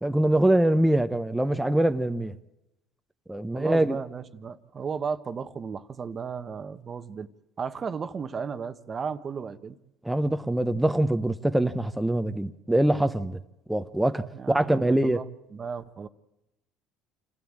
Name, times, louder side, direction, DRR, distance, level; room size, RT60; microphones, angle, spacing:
voice 1, 0.0-2.3 3.3-4.0 10.0-13.4 13.7-15.2, right 1 dB, 5° right, 0.9 m, -24 dB
voice 2, 3.5-7.3 7.6-9.8 14.3-15.2 15.5-16.1, right 6 dB, 35° right, 1.1 m, -34 dB
27.5 x 13.0 x 8.8 m
supercardioid pair, 90°, 0 cm